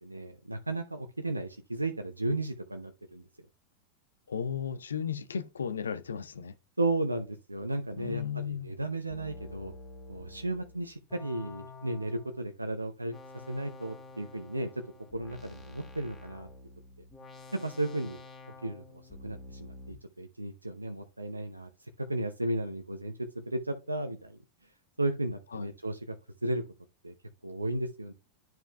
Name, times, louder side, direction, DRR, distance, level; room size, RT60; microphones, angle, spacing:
voice 1, 0.0-3.2 6.8-9.7 10.1-13.2 13.5-14.8 15.1-16.5 17.5-18.2 18.6-21.7 22.0-24.4 25.0-26.2 26.4-26.6 27.0-27.1 27.4-28.1, right 2 dB, 90° right, 0.6 m, -34 dB
voice 2, 4.3-6.5 7.9-8.7 25.5-25.7, left 7 dB, 75° left, 0.5 m, -35 dB
sound 1, 8.0-8.3 9.1-12.5 13.1-19.9, left 2 dB, 20° left, 1.9 m, -49 dB
10.5 x 4.5 x 2.2 m
figure-of-eight pair, 90°, 0 cm